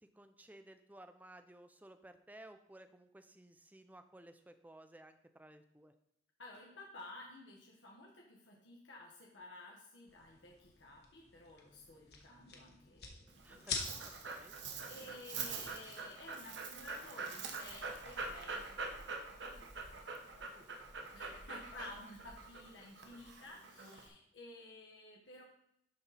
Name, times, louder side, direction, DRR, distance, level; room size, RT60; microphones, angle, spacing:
voice 1, 0.0-5.9 13.4-13.8 14.0-14.5, right 1 dB, 10° right, 9 dB, 0.4 m, -57 dB
voice 2, 6.4-14.0 14.3-14.4 14.8-25.4, left 2 dB, 85° left, -2 dB, 1.3 m, -54 dB
sound 1, 10.1-16.8, left 4 dB, 60° left, 1.3 m, -48 dB
Dog, 13.3-24.1, right 4 dB, 80° right, 1.1 m, -45 dB
12.0 x 4.2 x 4.1 m, 0.77 s
head